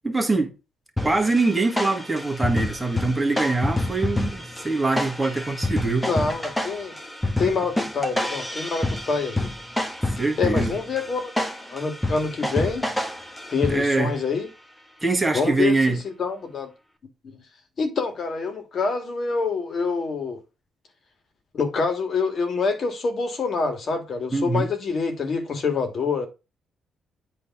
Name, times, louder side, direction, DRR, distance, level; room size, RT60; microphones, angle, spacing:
voice 1, 0.0-0.5 1.0-6.1 10.2-10.7 13.7-14.1 15.0-16.0 24.3-24.7, right 3 dB, 10° right, 1.8 m, -23 dB
sound 1, 1.0-14.1, left 1 dB, 5° left, 1.1 m, -28 dB
voice 2, 6.1-6.9 7.4-9.5 10.4-12.8 13.5-14.5 15.3-16.7 17.8-20.4 21.5-26.3, left 4 dB, 50° left, 1.8 m, -26 dB
8.3 x 3.3 x 5.9 m
cardioid pair, 90°, 0 cm